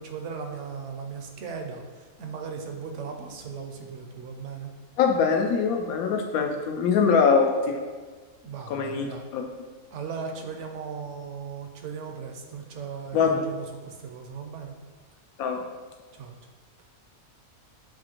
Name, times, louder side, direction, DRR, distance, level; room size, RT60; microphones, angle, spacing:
voice 1, 0.0-4.7 8.4-9.3 9.9-14.7 16.1-16.4, right 5 dB, 65° right, 3 dB, 0.8 m, -37 dB
voice 2, 5.0-7.8 8.7-9.4 13.1-13.4 15.4-15.6, left 5 dB, 85° left, 3 dB, 1.1 m, -23 dB
7.0 x 2.5 x 2.9 m, 1.4 s
omnidirectional pair, 1.5 m